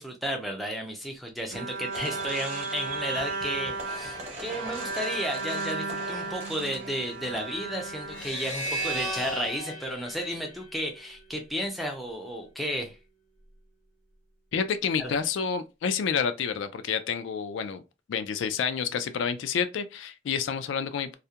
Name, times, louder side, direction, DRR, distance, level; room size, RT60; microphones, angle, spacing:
voice 1, 0.0-13.0 15.0-15.1, equal, ahead, 0.4 m, -33 dB
Bowed string instrument, 1.5-8.9, right 3 dB, 75° right, 0.5 m, -35 dB
sound 1, 1.9-9.6, right 1 dB, 35° right, 0.9 m, -43 dB
sound 2, 8.1-11.4, right 1 dB, 85° left, 1.1 m, -35 dB
voice 2, 14.5-17.8 18.1-21.1, left 6 dB, 70° left, 0.3 m, -29 dB
2.3 x 2.1 x 2.7 m
head